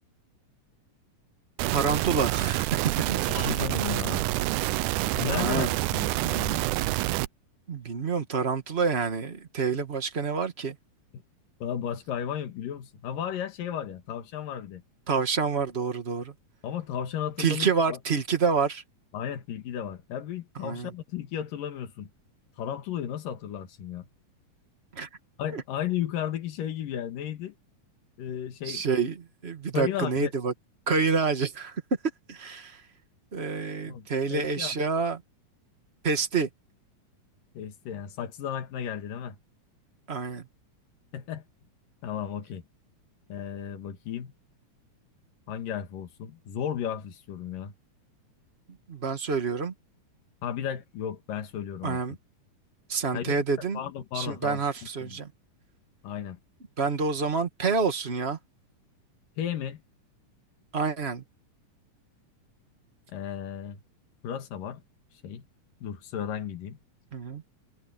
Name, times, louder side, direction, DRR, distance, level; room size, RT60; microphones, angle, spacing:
sound 1, 1.6-7.3, right 17 dB, 80° right, 2.1 m, -27 dB
voice 1, 1.7-3.6 5.3-5.7 7.7-10.7 15.1-16.3 17.4-18.8 20.6-20.9 24.9-25.1 25.5-25.6 28.6-29.2 29.4-30.5 30.9-31.8 32.3-32.8 33.3-35.2 36.0-36.5 40.1-40.4 48.9-49.7 51.8-52.2 52.9-53.8 54.1-55.3 56.8-58.4 60.7-61.2 67.1-67.4, right 5 dB, 50° right, 0.7 m, -28 dB
voice 2, 3.3-4.3 5.1-6.6 11.6-14.8 16.6-18.0 19.1-22.1 22.6-24.1 25.4-27.5 28.2-28.8 29.7-30.3 33.9-34.8 37.6-39.4 41.1-41.4 42.0-42.6 43.3-44.3 45.5-47.7 50.4-52.0 53.1-53.4 53.7-54.6 55.0-55.2 56.0-56.4 59.4-59.8 63.1-63.8 64.2-64.8 65.2-65.4 65.8-66.8, left 9 dB, 80° left, 3.5 m, -34 dB
omnidirectional pair, 3.8 m